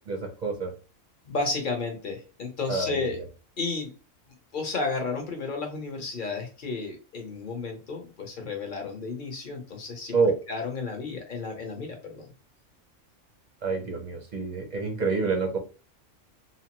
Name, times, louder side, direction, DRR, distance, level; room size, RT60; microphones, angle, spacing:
voice 1, 0.1-0.7 2.7-3.2 10.1-10.3 13.6-15.6, right 4 dB, 50° right, 1 dB, 0.5 m, -27 dB
voice 2, 1.3-3.2 3.6-3.9 4.5-10.2 10.5-12.3, left 4 dB, 50° left, 2 dB, 0.7 m, -32 dB
2.8 x 2.0 x 2.8 m, 0.34 s
omnidirectional pair, 1.4 m